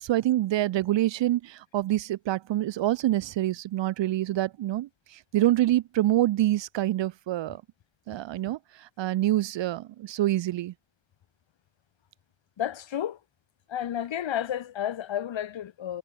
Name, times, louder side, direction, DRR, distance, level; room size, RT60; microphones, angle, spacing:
voice 1, 0.0-4.9 5.3-7.6 8.1-8.6 9.0-10.7, right 14 dB, 65° right, 0.6 m, -26 dB
voice 2, 12.6-13.2 13.7-16.0, left 10 dB, 65° left, 1.4 m, -31 dB
cardioid pair, 65°, 48 cm